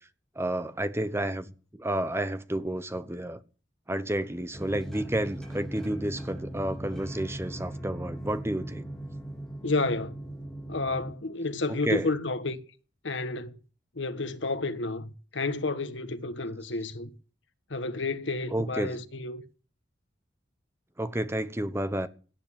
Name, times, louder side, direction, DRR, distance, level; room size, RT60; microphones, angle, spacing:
voice 1, 0.4-3.4 3.9-8.8 11.7-12.1 18.5-19.0 21.0-22.1, right 1 dB, 15° right, 1.1 m, -31 dB
sound 1, 4.5-11.1, right 1 dB, ahead, 4.2 m, -39 dB
voice 2, 9.6-10.2 10.7-12.6 13.0-13.5 13.9-17.1 17.7-19.4, left 3 dB, 75° left, 1.5 m, -30 dB
17.5 x 9.9 x 7.6 m
head